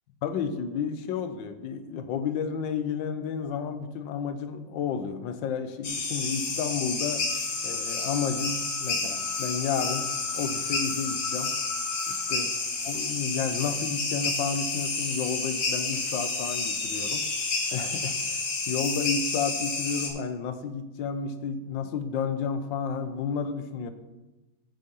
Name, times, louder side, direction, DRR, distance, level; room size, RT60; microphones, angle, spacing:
voice 1, 0.2-7.3 7.6-10.1 10.3-11.5 12.1-12.6 12.8-17.3 17.7-23.9, left 6 dB, 75° left, 10 dB, 1.4 m, -31 dB
sound 1, 5.8-20.1, left 3 dB, 50° left, 1.6 m, -30 dB
9.0 x 5.9 x 5.3 m, 1.1 s
omnidirectional pair, 2.1 m